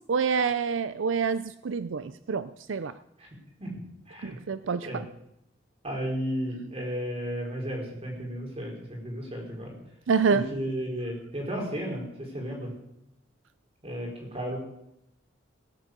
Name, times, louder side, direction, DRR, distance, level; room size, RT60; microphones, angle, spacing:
voice 1, 0.1-2.9 4.2-5.1 10.1-10.5, right 5 dB, 80° right, 14 dB, 0.5 m, -27 dB
voice 2, 5.8-9.7 10.3-12.7 13.8-14.6, equal, 30° right, 0 dB, 4.5 m, -33 dB
17.5 x 8.2 x 8.0 m, 0.83 s
head